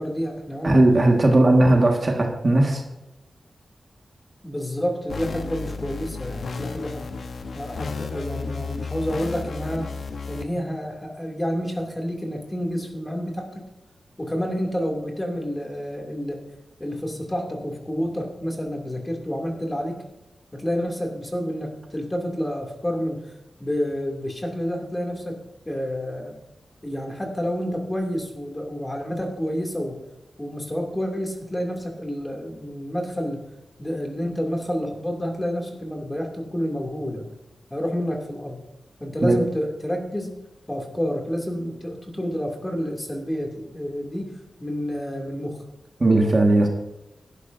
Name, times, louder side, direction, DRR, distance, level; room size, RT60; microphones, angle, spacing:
voice 1, 0.0-0.8 1.2-1.5 4.4-7.1 7.5-9.9 10.3-13.6 14.2-16.4 16.8-20.0 20.5-23.2 23.6-25.4 25.7-26.3 26.8-30.0 30.4-33.4 33.8-37.3 37.7-38.6 39.0-40.4 40.7-45.6, equal, 15° left, 1 dB, 2.6 m, -29 dB
voice 2, 0.6-2.8 39.2-39.4 46.0-46.7, right 2 dB, 35° right, 1 dB, 1.7 m, -17 dB
sound 1, 5.1-10.4, left 4 dB, 75° left, 1.0 m, -33 dB
17.0 x 11.5 x 2.7 m, 0.96 s
wide cardioid pair, 105°, 0 cm